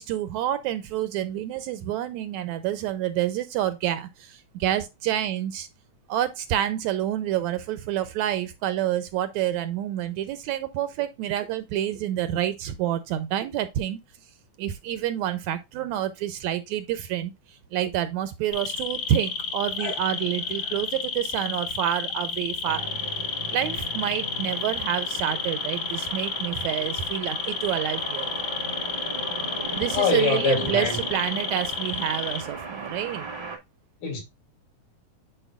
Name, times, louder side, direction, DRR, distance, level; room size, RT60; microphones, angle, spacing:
voice 1, 0.0-5.7 6.1-14.0 14.6-17.3 17.7-22.9 23.5-28.3 29.8-33.3, right 12 dB, 80° right, 1.8 m, -28 dB
sound 1, 18.5-32.4, left 6 dB, 60° left, 2.2 m, -31 dB
sound 2, 22.6-33.6, right 3 dB, 55° right, 0.7 m, -37 dB
voice 2, 29.9-31.0 34.0-34.2, left 6 dB, 75° left, 4.4 m, -24 dB
10.0 x 4.7 x 2.4 m
omnidirectional pair, 3.6 m